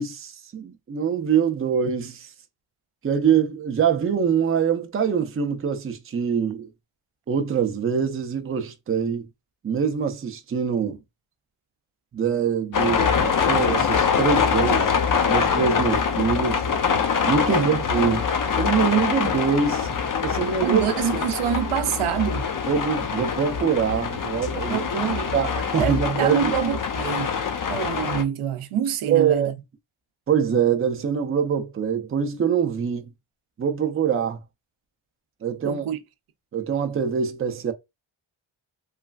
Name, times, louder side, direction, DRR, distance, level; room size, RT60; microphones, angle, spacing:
voice 1, 0.0-2.3 3.0-6.7 7.3-9.3 9.6-11.0 12.1-14.9 15.3-16.7 17.3-18.3 18.6-20.8 22.7-24.9 25.3-26.5 29.1-29.5 30.3-33.1 33.6-34.4 35.4-35.8 36.5-37.7, right 7 dB, 30° right, 0.4 m, -24 dB
sound 1, 12.7-28.2, left 6 dB, 45° left, 0.5 m, -24 dB
voice 2, 20.6-22.5 24.7-25.3 25.8-27.3 27.7-29.5 35.6-36.0, right 9 dB, 90° right, 0.5 m, -26 dB
3.1 x 2.3 x 2.3 m
wide cardioid pair, 155°, 49 cm